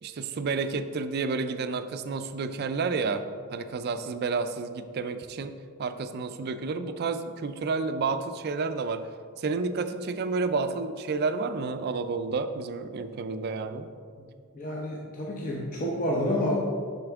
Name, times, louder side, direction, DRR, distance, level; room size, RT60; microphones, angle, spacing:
voice 1, 0.0-3.2 3.5-9.1 9.4-13.9 16.3-16.4, right 4 dB, 45° right, 10 dB, 0.3 m, -30 dB
voice 2, 14.5-16.6, left 1 dB, 40° left, -4 dB, 0.7 m, -29 dB
6.9 x 5.7 x 3.5 m, 2.1 s
head